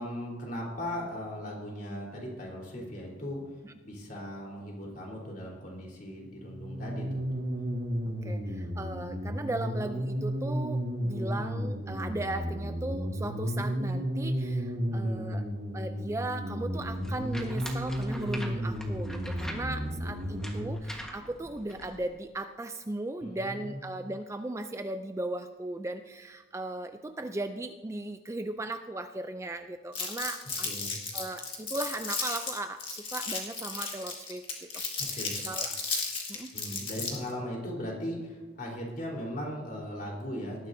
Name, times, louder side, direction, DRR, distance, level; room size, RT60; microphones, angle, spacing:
voice 1, 0.0-7.3 11.1-11.4 14.9-15.2 23.2-23.8 30.6-31.0 35.0-35.5 36.5-40.7, equal, 45° left, -2 dB, 3.9 m, -38 dB
sound 1, 6.3-20.7, equal, 65° right, 3.0 m, -33 dB
voice 2, 8.2-15.5 15.7-30.7 31.1-34.4 34.7-34.8 35.1-35.8 36.3-36.5, right 2 dB, 15° right, 8 dB, 0.4 m, -37 dB
sound 2, 16.7-22.1, equal, 5° left, 1.4 m, -44 dB
Crumpling crinkling, 29.9-37.3, left 4 dB, 30° left, 2.1 m, -34 dB
18.5 x 13.5 x 2.7 m, 1.2 s
head